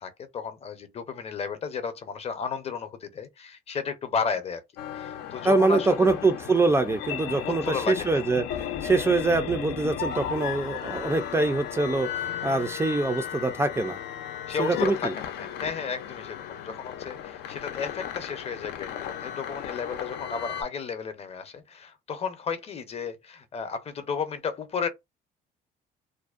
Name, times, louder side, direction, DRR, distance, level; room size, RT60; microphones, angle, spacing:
voice 1, 0.0-4.6 4.9-6.1 7.4-8.2 14.5-24.9, left 6 dB, 35° left, 0.6 m, -33 dB
sound 1, 4.8-20.6, left 9 dB, 80° left, 0.5 m, -35 dB
voice 2, 5.4-8.4 8.8-14.0 14.6-15.1, right 3 dB, 15° right, 0.4 m, -24 dB
2.5 x 2.0 x 2.4 m
cardioid pair, 110°, 17 cm